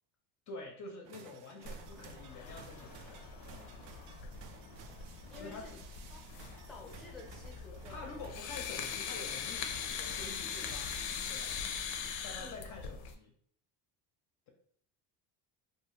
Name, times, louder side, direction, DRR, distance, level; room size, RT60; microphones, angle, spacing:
voice 1, 0.5-3.2 3.5-3.8 5.3-5.8 7.9-11.5 12.2-13.3, left 3 dB, 40° left, 1 dB, 0.5 m, -48 dB
sound 1, 1.0-11.5, right 7 dB, 85° right, 0.5 m, -56 dB
sound 2, 1.6-13.1, left 6 dB, 90° left, 0.5 m, -42 dB
voice 2, 5.3-5.7 6.1-6.3 6.7-8.1 12.3-12.6, left 3 dB, ahead, -2 dB, 0.6 m, -51 dB
2.5 x 2.3 x 3.0 m, 0.62 s
cardioid pair, 130°, 43 cm